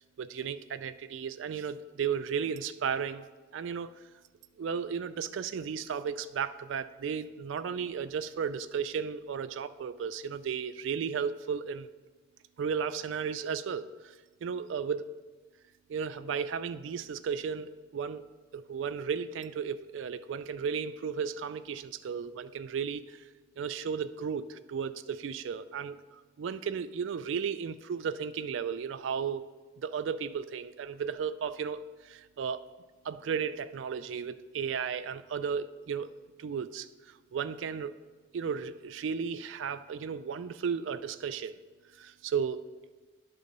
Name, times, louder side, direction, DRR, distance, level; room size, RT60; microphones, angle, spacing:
voice 1, 0.0-3.2 3.5-3.9 4.6-11.9 12.6-13.9 14.4-15.1 15.9-18.2 18.5-23.2 23.6-29.4 29.8-32.6 33.1-36.1 36.4-37.9 38.3-41.6 42.0-42.6, right 6 dB, 70° right, 11 dB, 0.3 m, -34 dB
10.5 x 3.7 x 5.3 m, 1.3 s
head